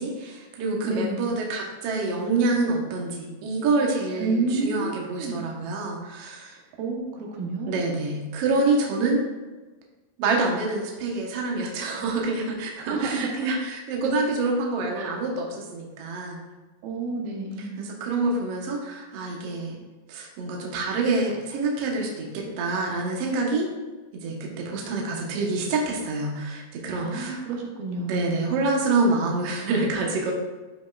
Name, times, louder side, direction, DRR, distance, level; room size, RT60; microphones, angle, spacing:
voice 1, 0.0-6.6 7.7-9.3 10.2-16.4 17.6-19.8 20.1-23.7 24.1-27.4 28.1-30.3, right 3 dB, 65° right, -1 dB, 1.7 m, -27 dB
voice 2, 0.8-1.3 4.2-5.4 6.8-7.8 12.9-13.5 15.0-15.2 16.8-17.9 27.0-28.5, right 3 dB, 85° right, 1 dB, 2.8 m, -30 dB
11.0 x 5.4 x 2.4 m, 1.2 s
omnidirectional pair, 4.0 m